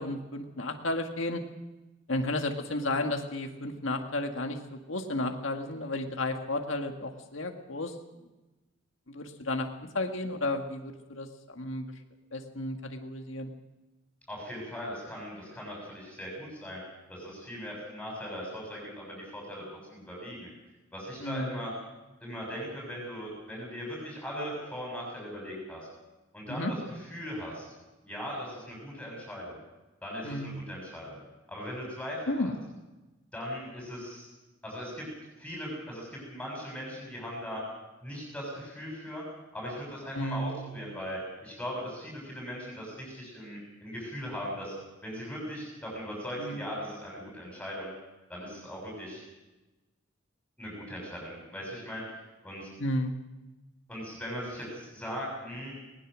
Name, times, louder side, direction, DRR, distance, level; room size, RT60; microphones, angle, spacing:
voice 1, 0.0-1.4 2.1-7.9 9.1-9.7 9.9-11.9 12.3-13.5 21.2-21.5 26.5-26.7 30.2-30.6 32.3-32.5 40.1-40.7 46.4-46.7 52.8-53.1, left 1 dB, 70° left, 4 dB, 1.9 m, -33 dB
voice 2, 14.3-16.8 17.1-19.6 19.9-20.5 20.9-21.7 22.2-25.8 26.3-27.6 28.0-29.6 30.0-31.2 31.5-32.5 33.3-34.3 34.6-35.1 35.4-37.6 38.0-39.2 39.5-44.7 45.0-47.9 48.3-49.2 50.6-52.7 53.9-55.7, equal, 5° left, -3 dB, 6.7 m, -39 dB
20.5 x 20.0 x 6.4 m, 1.1 s
head